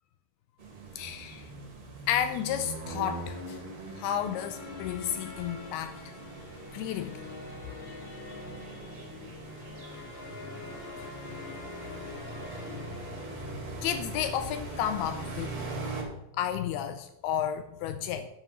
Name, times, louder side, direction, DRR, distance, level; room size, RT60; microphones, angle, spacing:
sound 1, 0.6-16.0, right 3 dB, 40° right, 3.3 m, -41 dB
voice 1, 1.0-1.5 2.1-3.6 4.0-6.1 6.7-7.2 8.1-8.4 8.7-8.8 13.8-15.5 16.4-18.3, left 10 dB, 85° left, 2.5 m, -32 dB
sound 2, 3.7-14.1, left 4 dB, 35° left, 2.5 m, -46 dB
10.5 x 8.2 x 6.2 m
omnidirectional pair, 4.6 m